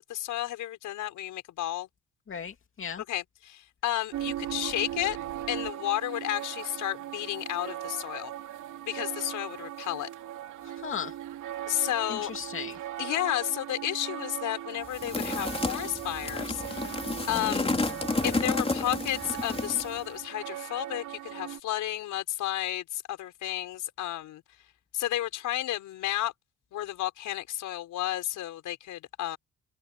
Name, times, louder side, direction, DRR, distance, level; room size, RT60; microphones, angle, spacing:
voice 1, 0.1-1.9 3.0-5.2 5.5-8.3 8.9-10.1 11.7-12.3 13.0-16.9 17.3-17.7 18.2-24.4 24.9-26.3 26.7-29.4, left 13 dB, 85° left, 5.7 m, -32 dB
voice 2, 2.3-3.0 10.8-11.1 12.1-12.8 17.3-17.9, left 7 dB, 45° left, 2.5 m, -37 dB
sound 1, 4.1-21.6, right 12 dB, 85° right, 2.7 m, -39 dB
sound 2, 14.9-20.0, left 3 dB, 20° left, 3.4 m, -31 dB
cardioid pair, 90°, 30 cm